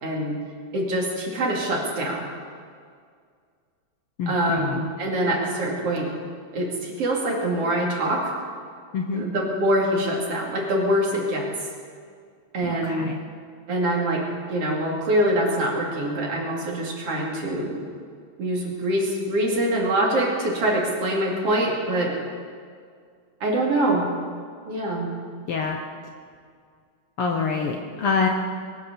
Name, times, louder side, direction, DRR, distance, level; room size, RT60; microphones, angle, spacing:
voice 1, 0.0-0.4 0.7-2.2 4.3-6.1 6.5-8.3 9.1-11.5 12.5-13.1 13.7-14.2 14.5-17.8 18.4-22.1 23.4-24.1 24.7-25.1, right 1 dB, 55° right, -1 dB, 3.3 m, -24 dB
voice 2, 4.2-4.9 8.9-9.3 12.6-13.2 25.5-25.8 27.2-28.3, left 5 dB, 65° left, 2 dB, 1.6 m, -26 dB
22.5 x 8.5 x 6.8 m, 2.1 s
omnidirectional pair, 3.4 m